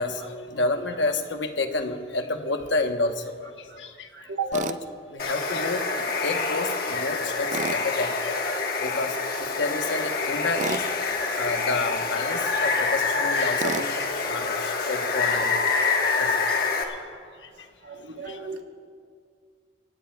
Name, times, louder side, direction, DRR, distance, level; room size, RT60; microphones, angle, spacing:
voice 1, 0.0-3.5 3.8-4.1 4.5-4.8 5.1-8.5 8.8-9.1 9.6-10.9 11.3-15.5 16.2-16.3 18.3-18.4, left 2 dB, 75° left, 6 dB, 1.0 m, -29 dB
voice 2, 4.1-4.5 17.8-18.6, right 6 dB, 80° right, 4 dB, 1.2 m, -34 dB
Tools, 4.5-4.8 7.5-7.8 10.6-10.9 13.6-13.9, right 5 dB, 40° right, 0.4 m, -30 dB
Water, 5.2-16.8, left 4 dB, 55° left, 1.3 m, -26 dB
25.5 x 16.5 x 2.3 m, 2.1 s
head